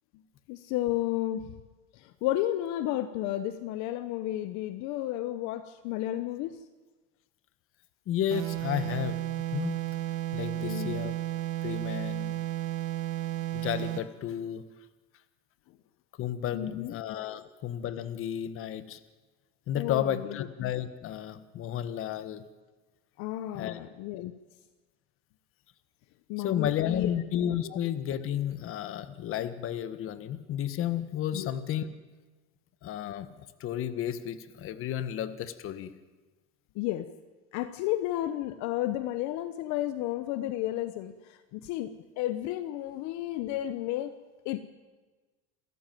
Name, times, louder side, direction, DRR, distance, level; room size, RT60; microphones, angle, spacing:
voice 1, 0.5-1.4 2.0-6.6 10.6-11.0 16.5-16.9 19.8-20.3 23.2-24.3 26.3-27.1 27.6-27.8 31.3-31.5 36.8-37.1 37.5-41.9 42.2-44.1 44.4-44.6, left 14 dB, 60° left, 11 dB, 1.1 m, -32 dB
voice 2, 8.1-9.2 9.5-9.8 10.3-11.1 11.6-12.4 13.5-14.6 16.2-19.0 19.7-22.4 23.5-23.8 26.4-31.9 32.8-33.3 33.6-35.9, left 10 dB, 40° left, 13 dB, 1.4 m, -32 dB
sound 1, 8.3-14.1, right 15 dB, 70° right, 1.6 m, -33 dB
27.5 x 14.5 x 9.3 m, 1.3 s
cardioid pair, 140°, 32 cm